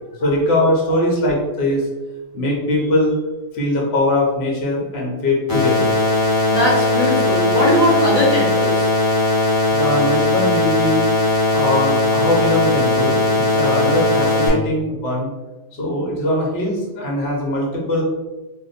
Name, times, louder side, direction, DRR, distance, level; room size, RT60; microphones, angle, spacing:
voice 1, 0.2-1.9 2.3-3.2 3.5-5.9 9.7-11.1 11.5-15.3 15.8-18.0, left 1 dB, 65° left, -2 dB, 1.1 m, -21 dB
sound 1, 5.5-14.5, left 2 dB, 20° left, 1.1 m, -18 dB
voice 2, 6.5-8.9, left 1 dB, 45° left, -4 dB, 0.6 m, -19 dB
2.8 x 2.1 x 4.0 m, 1.1 s
omnidirectional pair, 1.2 m